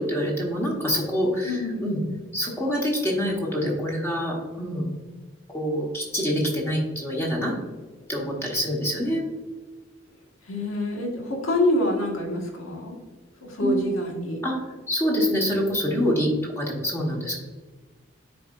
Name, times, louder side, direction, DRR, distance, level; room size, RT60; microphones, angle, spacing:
voice 1, 0.0-2.0 2.3-4.9 5.5-7.5 8.1-9.2 13.6-14.0 14.4-14.6 14.9-17.3, equal, 15° left, -3 dB, 1.3 m, -26 dB
voice 2, 1.4-1.9 10.5-13.0 13.4-14.4, left 1 dB, 85° left, 0 dB, 1.6 m, -26 dB
10.0 x 4.3 x 2.5 m, 1.4 s
head